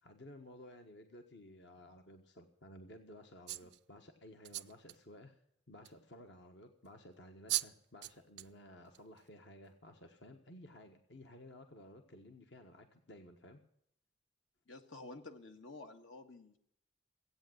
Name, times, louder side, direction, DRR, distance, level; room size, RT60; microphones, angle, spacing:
voice 1, 0.0-5.4 5.7-13.6, left 1 dB, 65° left, 5 dB, 1.4 m, -55 dB
sound 1, 3.5-3.8 4.4-5.0 5.8-5.9 7.1-7.2 7.5-7.7 8.0-8.5 8.9-9.2, right 16 dB, 60° right, 0.5 m, -38 dB
voice 2, 14.7-16.6, left 2 dB, 80° left, 6 dB, 1.6 m, -51 dB
16.0 x 8.8 x 7.9 m, 0.69 s
head